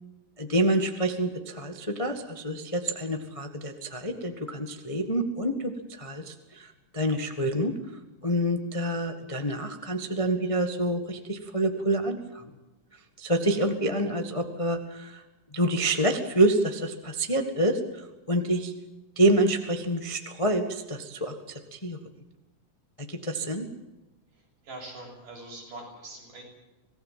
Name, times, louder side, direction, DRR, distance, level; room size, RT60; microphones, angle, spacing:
voice 1, 0.4-6.7 6.9-7.7 8.2-12.4 13.2-15.2 15.5-18.7 19.1-22.0 23.0-23.7, right 1 dB, 20° left, 5 dB, 0.8 m, -27 dB
voice 2, 24.6-26.4, right 2 dB, 80° right, 0 dB, 8.9 m, -42 dB
25.5 x 18.5 x 7.5 m, 1.1 s
omnidirectional pair, 3.7 m